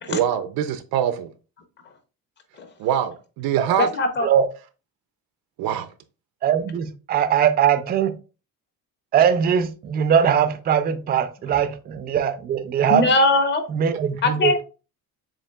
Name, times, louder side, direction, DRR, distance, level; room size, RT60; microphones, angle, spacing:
voice 1, 0.1-1.3 2.8-3.9 5.6-5.9, right 10 dB, 85° right, 0.6 m, -24 dB
voice 2, 3.8-4.3 12.9-13.7 14.2-14.6, left 2 dB, 30° left, 0.7 m, -20 dB
voice 3, 6.4-8.1 9.1-13.1 13.7-14.5, right 8 dB, 30° right, 0.4 m, -20 dB
7.2 x 2.8 x 2.2 m
cardioid pair, 165°, 35 cm